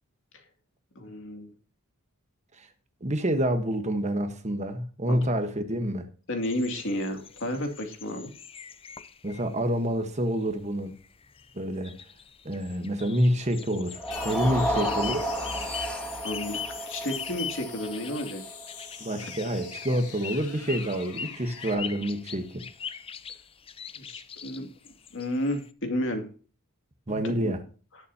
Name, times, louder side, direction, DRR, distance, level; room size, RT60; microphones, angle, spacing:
voice 1, 0.9-1.5 5.1-5.2 6.3-8.3 16.2-16.6 16.9-18.4 19.2-19.3 23.9-24.7 25.1-26.3 27.1-27.2 27.4-27.5, left 1 dB, 55° left, 2.5 m, -31 dB
voice 2, 3.0-6.1 9.2-10.9 11.5-12.0 12.4-15.3 19.0-22.6 27.1-27.6, equal, 30° right, 1.2 m, -28 dB
sound 1, 6.4-9.5 10.2-10.3 10.5-10.6 11.0-25.7, left 7 dB, 25° left, 0.5 m, -42 dB
sound 2, 13.9-20.2, equal, 5° left, 2.0 m, -33 dB
sound 3, 14.1-21.7, left 7 dB, 85° left, 2.2 m, -45 dB
19.0 x 7.0 x 2.8 m
head